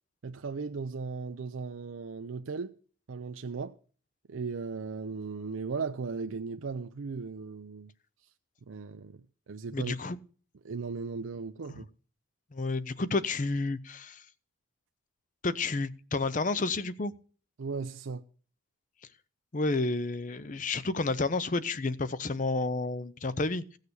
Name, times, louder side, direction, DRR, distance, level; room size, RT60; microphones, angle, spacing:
voice 1, 0.2-2.8 3.1-3.8 4.3-7.9 8.7-9.2 9.5-9.9 10.6-11.9 17.6-18.2, right 4 dB, 90° right, 0.5 m, -37 dB
voice 2, 9.7-10.2 11.7-11.8 12.5-14.3 15.4-17.1 19.5-23.8, left 3 dB, 40° left, 0.6 m, -30 dB
16.0 x 6.6 x 6.8 m
head